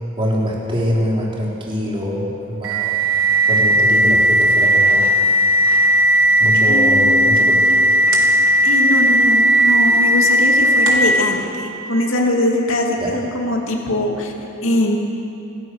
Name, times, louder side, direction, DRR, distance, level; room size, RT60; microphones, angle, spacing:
voice 1, 0.2-5.1 6.4-7.8 13.0-13.2, equal, 25° right, -4 dB, 4.2 m, -24 dB
sound 1, 2.6-11.2, right 1 dB, 75° right, 3.5 m, -15 dB
voice 2, 6.7-7.8 8.6-14.3 14.6-15.0, left 1 dB, 70° left, 0 dB, 2.7 m, -22 dB
27.5 x 15.5 x 6.6 m, 2.7 s
head